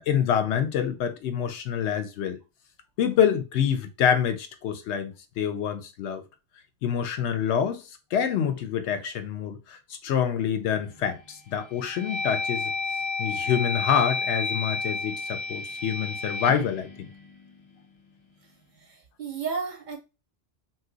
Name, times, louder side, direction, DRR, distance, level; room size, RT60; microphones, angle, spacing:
voice 1, 0.1-2.4 3.0-6.2 6.8-7.8 8.1-12.7 13.2-17.1, left 8 dB, 80° left, 0.9 m, -26 dB
sound 1, 10.7-11.2 11.7-17.9, left 3 dB, 35° left, 0.6 m, -31 dB
voice 2, 18.8-20.0, right 5 dB, 55° right, 0.6 m, -33 dB
2.7 x 2.2 x 3.8 m
omnidirectional pair, 1.1 m